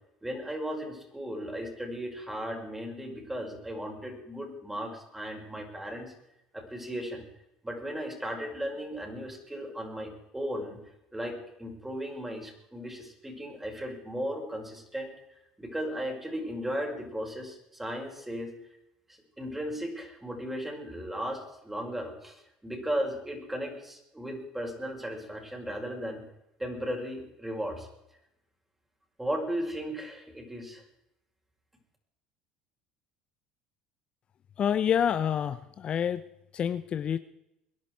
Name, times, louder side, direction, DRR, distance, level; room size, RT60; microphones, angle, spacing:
voice 1, 0.2-6.1 6.5-7.2 7.6-10.8 11.1-18.5 19.1-26.2 26.6-27.9 29.2-30.8, equal, 10° right, 1 dB, 5.8 m, -36 dB
voice 2, 34.6-36.2 36.5-37.2, left 8 dB, 45° left, 12 dB, 0.7 m, -27 dB
22.0 x 11.0 x 4.8 m, 0.83 s
hypercardioid pair, 75°, 3 cm